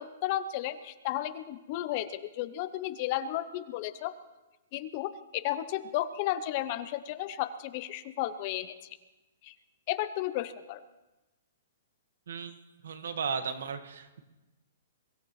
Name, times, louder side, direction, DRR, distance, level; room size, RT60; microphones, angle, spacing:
voice 1, 0.0-4.1 4.7-8.7 9.4-9.5 9.9-10.8, left 13 dB, 30° left, 13 dB, 0.6 m, -33 dB
voice 2, 12.8-14.2, right 6 dB, 75° right, 8 dB, 1.5 m, -35 dB
23.0 x 16.0 x 3.2 m, 1.1 s
hypercardioid pair, 175°, 0 cm